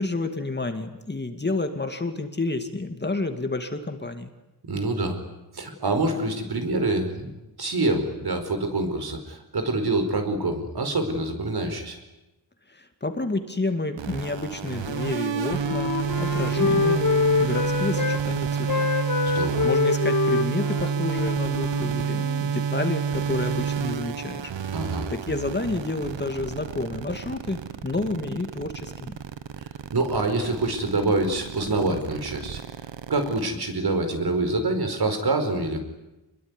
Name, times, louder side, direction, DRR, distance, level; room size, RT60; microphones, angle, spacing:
voice 1, 0.0-4.3 12.7-15.9 16.2-17.1 17.4-19.0 19.3-24.5 25.1-29.2, left 2 dB, 25° left, 7 dB, 2.3 m, -30 dB
voice 2, 4.7-5.2 5.5-7.3 7.6-12.0 19.3-19.7 24.7-25.1 29.9-32.6 33.1-35.8, right 2 dB, 60° right, 6 dB, 5.2 m, -26 dB
sound 1, 14.0-33.5, right 7 dB, 80° right, 1.4 m, -29 dB
Wind instrument woodwind instrument, 14.8-18.2 18.5-22.4, left 4 dB, 45° left, 2.2 m, -26 dB
27.0 x 22.5 x 9.9 m, 0.99 s
wide cardioid pair, 130°, 44 cm